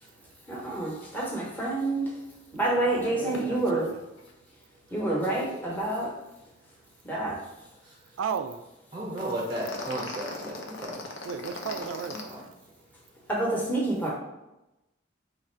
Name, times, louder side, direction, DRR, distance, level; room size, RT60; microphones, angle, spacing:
voice 1, 0.5-2.1 2.5-3.9 4.9-6.1 7.0-7.4 13.3-14.1, right 2 dB, 10° left, -4 dB, 0.7 m, -28 dB
voice 2, 2.7-4.0 8.2-8.6 11.3-12.3, right 6 dB, 85° right, 10 dB, 0.3 m, -35 dB
sound 1, 3.3-3.4 3.7-3.9 4.2-4.3 9.2-12.2, left 2 dB, 80° left, 0.6 m, -39 dB
voice 3, 8.9-11.0 12.1-12.4, right 1 dB, 25° right, -2 dB, 0.5 m, -34 dB
3.2 x 2.5 x 4.3 m, 0.95 s
head